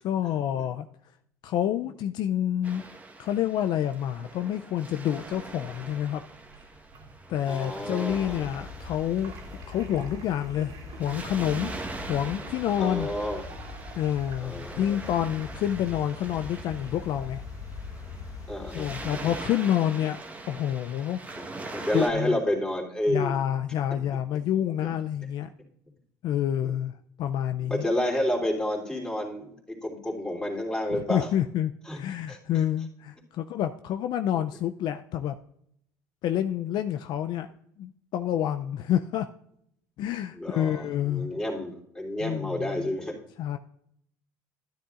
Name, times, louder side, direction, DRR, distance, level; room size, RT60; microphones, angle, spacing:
voice 1, 0.0-0.9 1.4-2.8 3.2-6.2 7.3-9.3 9.7-11.7 12.1-13.1 14.0-17.4 18.7-20.2 20.5-21.2 21.9-22.4 23.1-25.5 26.2-27.9 30.9-35.3 36.2-37.5 37.8-39.3 40.0-41.3 42.2-42.9 43.4-43.6, left 10 dB, 60° left, 9 dB, 0.4 m, -28 dB
Waves surf, 2.6-22.1, right 2 dB, 15° right, 1.2 m, -43 dB
sound 1, 5.1-14.9, right 4 dB, 55° right, 2.3 m, -49 dB
voice 2, 7.5-8.5 12.8-13.4 14.4-15.0 18.5-18.9 21.4-21.5 21.7-23.3 27.6-31.3 31.9-32.0 32.3-32.4 40.3-43.1, left 1 dB, 10° left, -2 dB, 3.1 m, -30 dB
sound 2, 8.1-19.5, left 4 dB, 40° left, 1.1 m, -42 dB
13.0 x 10.0 x 2.5 m, 0.73 s
supercardioid pair, 95°, 9 cm